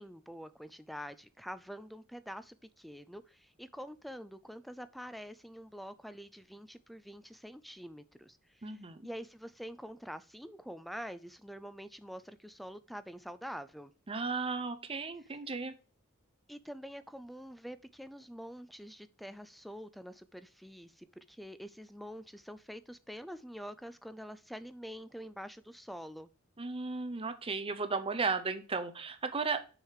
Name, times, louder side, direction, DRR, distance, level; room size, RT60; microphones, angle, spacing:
voice 1, 0.0-13.9 16.5-26.3, equal, ahead, 13 dB, 0.3 m, -46 dB
voice 2, 8.6-9.1 14.1-15.7 26.6-29.7, right 4 dB, 25° right, 8 dB, 0.7 m, -35 dB
6.3 x 4.7 x 6.6 m, 0.37 s
head